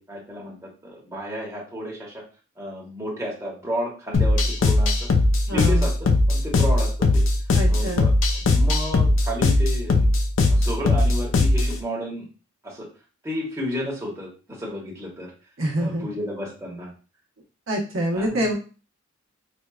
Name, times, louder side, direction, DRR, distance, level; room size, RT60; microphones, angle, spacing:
voice 1, 0.0-2.2 2.6-5.1 5.5-5.9 6.3-7.2 7.7-8.1 8.4-10.1 10.5-12.3 12.6-12.9 13.2-15.3 15.8-16.9 18.1-18.5, equal, 15° right, -3 dB, 1.0 m, -32 dB
sound 1, 4.1-11.7, left 2 dB, 70° left, 0.5 m, -19 dB
voice 2, 5.5-5.9 7.5-8.1 15.6-16.1 17.7-18.6, right 1 dB, 85° right, 0 dB, 0.8 m, -26 dB
4.3 x 2.2 x 2.3 m, 0.34 s
head